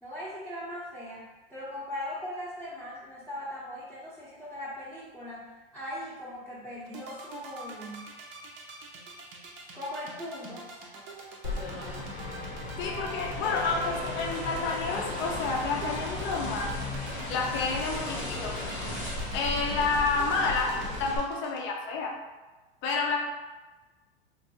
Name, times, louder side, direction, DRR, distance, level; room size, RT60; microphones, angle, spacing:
voice 1, 0.0-5.5 5.7-8.1 9.7-10.7 13.8-14.0, left 1 dB, ahead, -12 dB, 0.8 m, -39 dB
sound 1, 6.9-21.6, right 4 dB, 35° right, 0.6 m, -45 dB
sound 2, 11.4-21.2, left 2 dB, 80° left, 1.0 m, -35 dB
voice 2, 12.8-16.8 17.3-18.6 19.3-22.2 22.8-23.2, left 4 dB, 40° left, 1 dB, 0.6 m, -29 dB
3.2 x 2.2 x 2.8 m, 1.2 s
hypercardioid pair, 100°, 31 cm